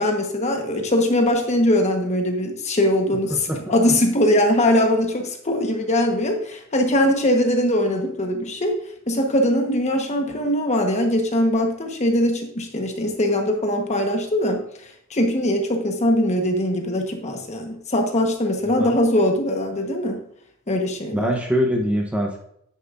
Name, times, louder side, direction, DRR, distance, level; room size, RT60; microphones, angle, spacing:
voice 1, 0.0-8.7 9.1-14.6 15.1-20.2 20.7-21.3, left 1 dB, 35° left, 3 dB, 1.2 m, -21 dB
voice 2, 21.1-22.4, equal, 5° right, 1 dB, 0.9 m, -23 dB
9.7 x 9.2 x 2.5 m, 0.72 s
head